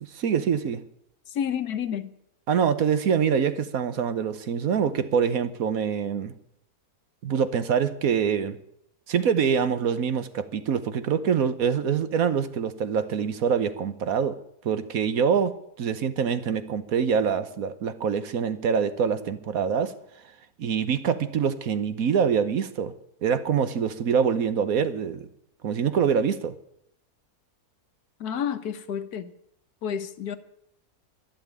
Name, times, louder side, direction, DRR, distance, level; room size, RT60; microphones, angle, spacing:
voice 1, 0.1-0.8 2.5-6.3 7.2-8.6 9.1-14.4 14.6-19.9 20.6-22.9 23.2-25.3 25.6-26.5, right 7 dB, 65° right, 11 dB, 1.4 m, -25 dB
voice 2, 1.3-2.1 28.2-29.3 29.8-30.4, left 8 dB, 80° left, 11 dB, 1.5 m, -30 dB
12.0 x 11.5 x 8.9 m, 0.75 s
omnidirectional pair, 1.6 m